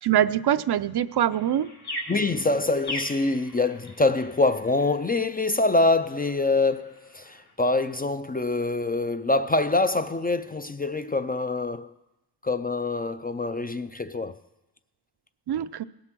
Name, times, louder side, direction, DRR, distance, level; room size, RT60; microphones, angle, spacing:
voice 1, 0.0-1.7 15.5-15.8, right 10 dB, 70° right, 0.5 m, -23 dB
sound 1, 1.3-7.5, left 1 dB, 65° left, 3.2 m, -40 dB
voice 2, 2.1-11.9 12.4-14.4, left 2 dB, 25° left, 0.3 m, -25 dB
17.5 x 7.8 x 6.0 m
wide cardioid pair, 140°, 41 cm